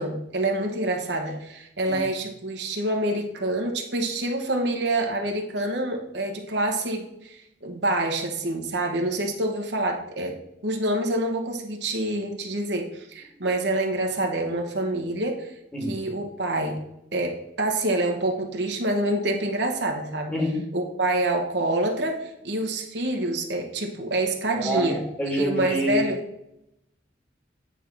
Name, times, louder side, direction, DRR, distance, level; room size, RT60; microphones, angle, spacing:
voice 1, 0.0-10.3 10.6-15.5 15.9-16.8 17.1-20.3 20.7-25.0 25.4-26.2, right 1 dB, 70° right, 3 dB, 1.2 m, -27 dB
voice 2, 20.3-20.6 24.6-24.9 25.2-26.0, right 1 dB, 10° left, -1 dB, 1.8 m, -26 dB
9.2 x 3.6 x 6.0 m, 0.81 s
head